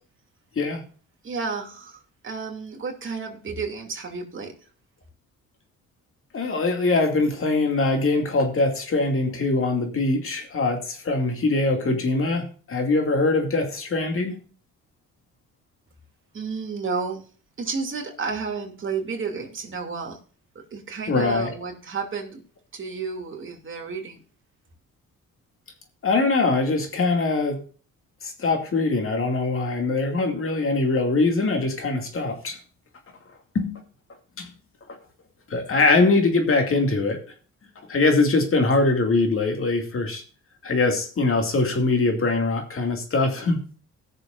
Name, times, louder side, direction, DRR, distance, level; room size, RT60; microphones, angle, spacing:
voice 1, 1.2-4.5 16.3-17.2 17.6-20.2 20.5-22.4 22.7-24.2, right 5 dB, 40° right, 2 dB, 2.8 m, -31 dB
voice 2, 6.3-14.4 21.1-21.6 26.0-27.6 28.2-32.6 33.5-33.7 34.4-34.5 35.5-37.2 37.9-40.2 40.6-43.6, left 3 dB, 45° left, 4 dB, 2.4 m, -22 dB
20.0 x 6.8 x 2.6 m, 0.40 s
cardioid pair, 90°, 30 cm